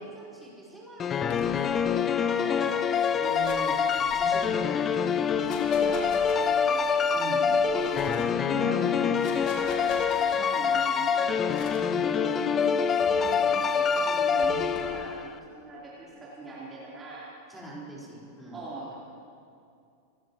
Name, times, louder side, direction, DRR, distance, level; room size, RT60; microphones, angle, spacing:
voice 1, 0.0-2.4 3.2-3.8 4.1-5.4 7.1-7.4 8.5-9.1 11.8-12.1 14.4-14.6 17.5-18.6, right 1 dB, ahead, -7 dB, 4.6 m, -40 dB
sound 1, 1.0-15.3, left 6 dB, 25° left, 0.6 m, -25 dB
sound 2, 1.3-1.9 3.0-4.5 5.2-6.8 7.5-8.4 9.0-10.4 11.5-12.0 13.0-13.4 14.4-15.0, left 4 dB, 45° left, 2.4 m, -45 dB
voice 2, 2.4-2.9 5.7-7.0 7.3-11.5 12.0-15.2 15.5-17.3 18.5-19.0, right 2 dB, 20° right, -8 dB, 3.8 m, -41 dB
27.5 x 15.5 x 3.1 m, 2.5 s
figure-of-eight pair, 90°, 0 cm